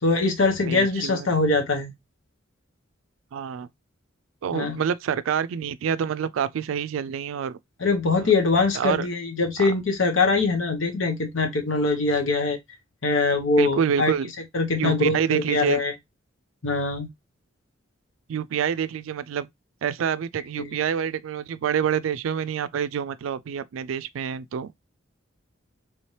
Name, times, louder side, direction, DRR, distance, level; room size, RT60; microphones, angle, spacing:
voice 1, 0.0-1.9 4.5-4.8 7.8-12.6 13.0-14.1 14.5-15.9 16.6-17.1 20.6-20.7, left 3 dB, 75° left, 1.0 m, -23 dB
voice 2, 0.6-1.3 3.3-3.7 4.4-7.6 8.2-8.3 8.7-9.1 9.6-9.7 13.6-14.3 14.8-15.8 18.3-19.5 19.8-24.8, right 8 dB, 85° right, 0.3 m, -27 dB
3.3 x 2.9 x 3.1 m
head